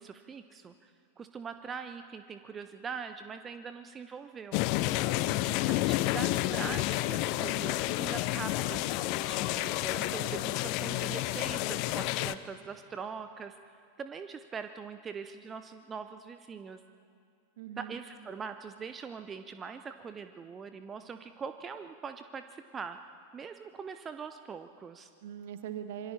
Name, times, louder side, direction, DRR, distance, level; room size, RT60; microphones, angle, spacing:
voice 1, 0.0-4.6 5.7-16.8 17.8-23.1 23.3-25.1, right 6 dB, 20° right, 9 dB, 0.7 m, -42 dB
sound 1, 4.5-12.4, left 16 dB, 45° left, 0.5 m, -30 dB
voice 2, 5.1-5.7 17.6-18.0 25.2-26.1, right 9 dB, 55° right, 10 dB, 1.3 m, -42 dB
26.5 x 23.0 x 4.3 m, 2.3 s
figure-of-eight pair, 90°, 0 cm